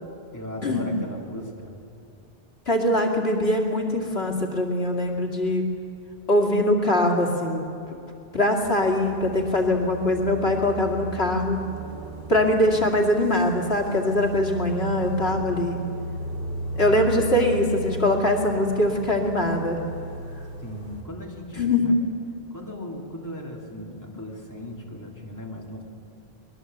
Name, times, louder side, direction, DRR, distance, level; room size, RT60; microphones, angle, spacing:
voice 1, 0.3-1.7 20.6-22.0 22.5-25.8, left 1 dB, 15° left, -1 dB, 3.2 m, -37 dB
voice 2, 2.7-5.6 6.3-7.6 8.3-11.6 12.3-15.8 16.8-19.8 21.6-21.9, left 1 dB, 85° left, 2 dB, 2.6 m, -22 dB
sound 1, 8.6-21.0, right 1 dB, 50° right, 2.6 m, -35 dB
24.0 x 20.5 x 7.9 m, 2.7 s
omnidirectional pair, 1.0 m